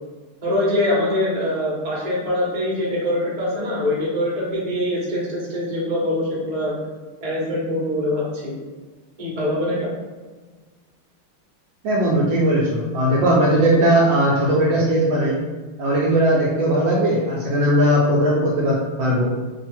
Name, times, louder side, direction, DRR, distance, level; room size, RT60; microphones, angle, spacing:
voice 1, 0.4-6.8 7.2-8.5 9.2-9.9, left 1 dB, 30° right, -6 dB, 0.7 m, -23 dB
voice 2, 11.8-15.4 15.8-19.3, right 1 dB, 70° right, -4 dB, 1.2 m, -18 dB
3.4 x 2.3 x 4.3 m, 1.4 s
omnidirectional pair, 2.4 m